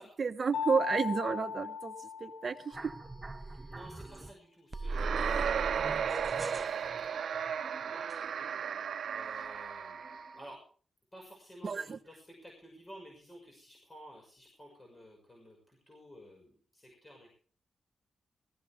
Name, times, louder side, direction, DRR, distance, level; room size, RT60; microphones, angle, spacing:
voice 1, 0.2-1.9 2.2-2.8 11.6-12.0, right 5 dB, 45° right, 1.2 m, -31 dB
Mallet percussion, 0.5-3.0, left 7 dB, 90° left, 1.9 m, -37 dB
sound 1, 2.7-4.3 4.7-8.7 9.1-10.5, right 2 dB, 20° right, 0.7 m, -42 dB
voice 2, 3.7-7.2 7.8-8.1 9.1-10.6 11.1-17.3, equal, 20° left, 6.0 m, -53 dB
sound 2, 4.9-10.3, right 7 dB, 75° right, 0.6 m, -35 dB
19.0 x 15.0 x 3.6 m
wide cardioid pair, 115°, 0 cm